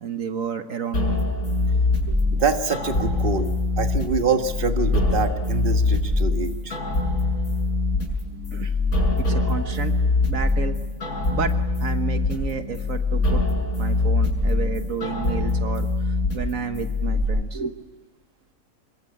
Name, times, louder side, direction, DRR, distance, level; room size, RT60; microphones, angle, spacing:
voice 1, 0.0-1.3 2.1-2.2 8.5-8.7 9.2-9.9 10.3-10.8 11.3-11.5 11.8-13.4 13.8-17.8, right 6 dB, 70° right, 7 dB, 1.7 m, -31 dB
sound 1, 0.9-17.2, left 2 dB, 80° left, 6.6 m, -23 dB
voice 2, 2.3-6.8, right 4 dB, 40° right, 6 dB, 1.6 m, -25 dB
26.5 x 22.0 x 8.7 m, 1.1 s
omnidirectional pair, 1.5 m